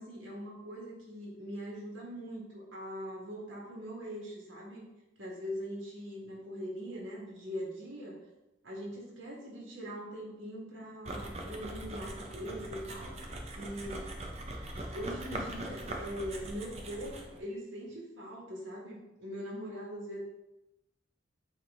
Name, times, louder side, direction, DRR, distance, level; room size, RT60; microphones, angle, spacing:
voice 1, 0.0-4.8 5.2-8.2 8.6-14.1 14.9-20.2, equal, 85° right, -3 dB, 1.9 m, -42 dB
sound 1, 11.0-17.4, right 1 dB, 35° right, 0.8 m, -41 dB
8.5 x 3.6 x 3.7 m, 0.95 s
head